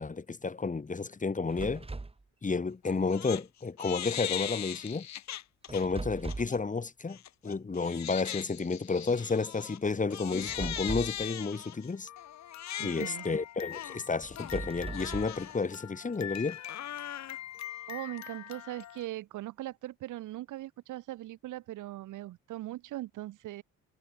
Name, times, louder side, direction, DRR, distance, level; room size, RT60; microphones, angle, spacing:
voice 1, 0.0-1.9 2.4-5.1 5.7-7.2 7.4-12.1 12.8-16.6, left 4 dB, 25° left, 2.1 m, -31 dB
sound 1, 1.5-2.2 5.7-6.7 10.3-11.3 14.2-15.5, right 3 dB, 20° right, 3.2 m, -39 dB
Crying sobbing, 2.8-3.4 3.8-5.8 6.3-6.6 7.1-19.1, left 11 dB, 65° left, 1.5 m, -40 dB
voice 2, 12.8-13.3 17.9-23.6, right 15 dB, 85° right, 2.4 m, -40 dB
cardioid pair, 90°, 30 cm